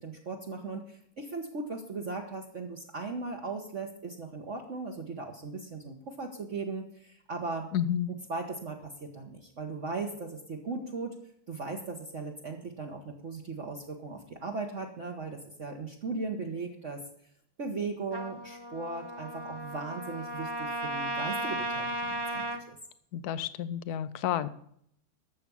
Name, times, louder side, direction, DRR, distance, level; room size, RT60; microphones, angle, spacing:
voice 1, 0.0-7.7 8.1-11.1 11.5-17.0 17.6-22.8, right 3 dB, 40° right, 0 dB, 1.5 m, -38 dB
voice 2, 7.7-8.1 23.1-24.5, left 10 dB, 60° left, 15 dB, 1.1 m, -30 dB
Trumpet, 18.1-22.6, right 1 dB, 20° right, 0.7 m, -35 dB
12.0 x 7.6 x 7.0 m, 0.68 s
omnidirectional pair, 2.1 m